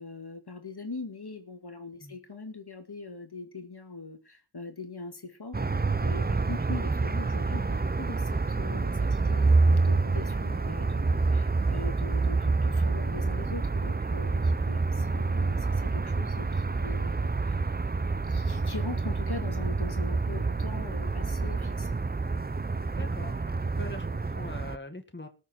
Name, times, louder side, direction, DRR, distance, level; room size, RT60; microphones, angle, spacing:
voice 1, 0.0-9.6 9.8-17.7 18.2-22.0, left 3 dB, 50° left, 6 dB, 2.2 m, -42 dB
sound 1, 5.5-24.8, right 3 dB, 20° right, 0.5 m, -27 dB
voice 2, 22.9-25.3, left 1 dB, 25° left, 6 dB, 1.8 m, -43 dB
19.5 x 6.8 x 4.5 m, 0.34 s
wide cardioid pair, 55°, 48 cm